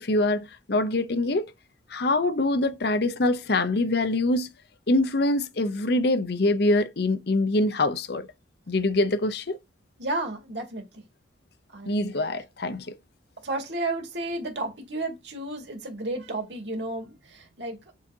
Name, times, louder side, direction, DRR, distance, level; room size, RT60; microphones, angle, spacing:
voice 1, 0.0-1.5 1.9-4.5 4.9-8.3 8.7-9.6 11.9-13.0, left 2 dB, 60° left, 0.7 m, -24 dB
voice 2, 10.0-11.0 11.7-12.1 13.4-17.8, right 2 dB, 65° right, 2.2 m, -32 dB
7.4 x 5.0 x 2.8 m
head